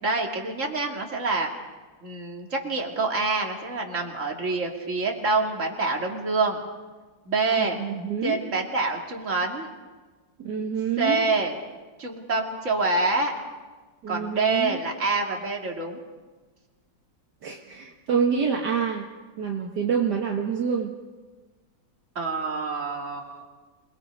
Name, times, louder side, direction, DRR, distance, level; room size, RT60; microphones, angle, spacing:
voice 1, 0.0-1.5 2.0-6.6 7.3-7.8 8.2-9.7 11.0-11.5 12.0-13.3 14.1-16.0 22.2-23.4, right 3 dB, 40° right, 1 dB, 2.8 m, -26 dB
voice 2, 7.6-8.4 10.4-11.3 14.0-14.8 17.4-19.1 19.4-20.9, right 6 dB, 65° right, 0 dB, 2.0 m, -27 dB
27.0 x 20.5 x 5.4 m, 1.3 s
omnidirectional pair, 2.0 m